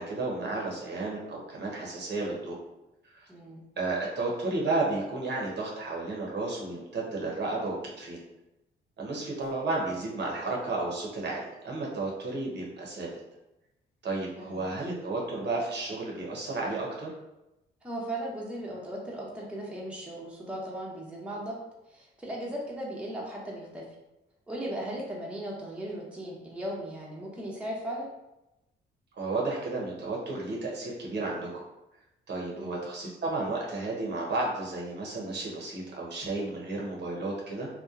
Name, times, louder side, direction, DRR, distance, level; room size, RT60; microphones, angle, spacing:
voice 1, 0.0-2.6 3.1-3.3 3.8-8.2 9.0-13.1 14.0-17.1 29.2-31.6 32.3-37.7, right 2 dB, 60° right, -3 dB, 0.8 m, -32 dB
voice 2, 3.3-3.6 14.4-14.6 17.8-21.6 21.9-23.8 24.5-28.1 32.6-32.8, right 1 dB, 5° right, -4 dB, 0.7 m, -37 dB
2.8 x 2.1 x 2.4 m, 0.94 s
cardioid pair, 75°, 20 cm